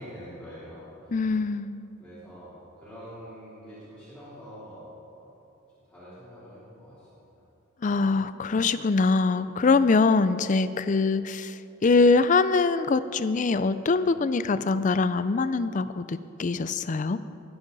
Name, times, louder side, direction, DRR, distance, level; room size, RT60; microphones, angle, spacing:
voice 1, 0.0-1.4 2.0-5.3 5.9-7.4, equal, 5° left, -13 dB, 3.4 m, -45 dB
voice 2, 1.1-2.0 7.8-11.5 11.8-17.2, left 4 dB, 35° left, 13 dB, 0.4 m, -23 dB
20.0 x 9.3 x 4.0 m, 2.8 s
head